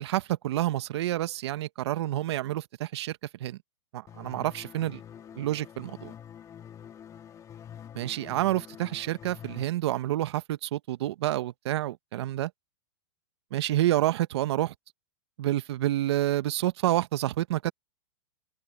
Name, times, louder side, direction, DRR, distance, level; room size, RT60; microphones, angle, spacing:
voice 1, 0.0-3.6 3.9-5.0 5.3-6.1 7.9-12.5 13.5-14.7 15.4-17.7, right 14 dB, 65° right, 1.3 m, -28 dB
sound 1, 4.1-9.6, left 9 dB, 20° left, 2.2 m, -46 dB
hypercardioid pair, 135°, 15 cm